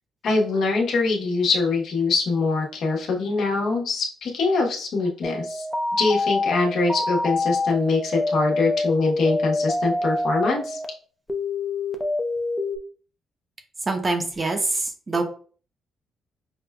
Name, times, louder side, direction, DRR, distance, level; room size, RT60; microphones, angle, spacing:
voice 1, 0.2-5.6 6.0-10.8, left 3 dB, 70° left, 0 dB, 1.0 m, -23 dB
sound 1, 5.2-10.9 11.3-12.8, left 2 dB, 10° left, 0.5 m, -26 dB
voice 2, 13.9-15.2, right 3 dB, 30° right, 5 dB, 0.7 m, -25 dB
5.2 x 2.3 x 2.3 m, 0.41 s
cardioid pair, 90°, 0 cm